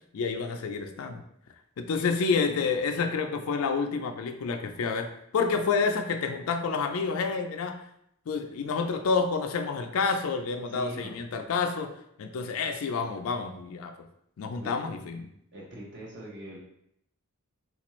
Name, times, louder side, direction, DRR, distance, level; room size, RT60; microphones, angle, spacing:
voice 1, 0.1-1.2 1.8-7.8 8.3-11.9 12.2-13.9 14.4-15.3, left 5 dB, 70° left, 6 dB, 0.4 m, -29 dB
voice 2, 10.7-11.1 14.6-14.7 15.5-16.6, right 1 dB, 55° right, -4 dB, 1.0 m, -42 dB
3.7 x 2.5 x 3.0 m, 0.73 s
head